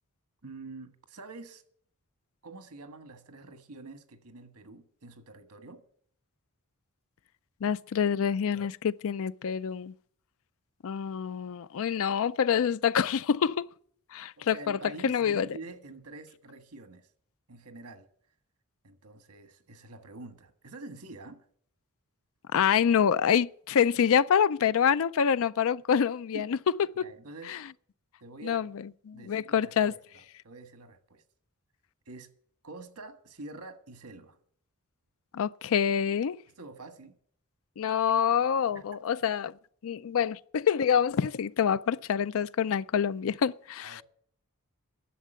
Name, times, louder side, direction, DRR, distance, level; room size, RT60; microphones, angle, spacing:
voice 1, 0.4-1.6 2.4-5.8 14.4-17.1 17.5-18.1 18.8-21.5 26.3-26.5 27.0-27.6 28.2-28.6 29.1-31.2 32.1-32.3 32.6-34.4 36.6-37.2 38.7-38.9 43.8-44.0, right 3 dB, 80° right, 1.5 m, -46 dB
voice 2, 7.6-9.9 10.8-13.7 14.1-14.8 15.0-15.5 22.5-26.6 27.0-27.1 27.5-27.6 28.4-28.7 29.1-29.9 35.3-36.4 37.8-39.5 39.8-44.0, left 7 dB, 65° left, 0.4 m, -26 dB
11.0 x 7.4 x 9.0 m
head